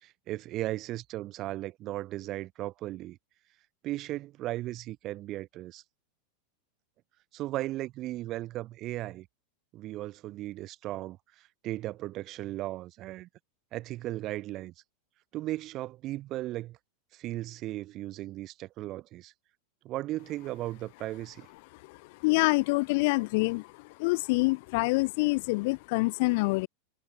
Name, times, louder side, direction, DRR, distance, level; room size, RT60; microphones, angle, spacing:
voice 1, 0.0-3.2 3.8-5.8 7.3-9.3 9.7-11.2 11.6-13.3 13.7-14.7 15.3-16.8 17.2-19.3 19.8-21.5, right 16 dB, 45° right, 1.7 m, -36 dB
voice 2, 22.2-23.7 24.0-26.7, left 26 dB, 60° left, 0.7 m, -26 dB
hypercardioid pair, 100°, 0 cm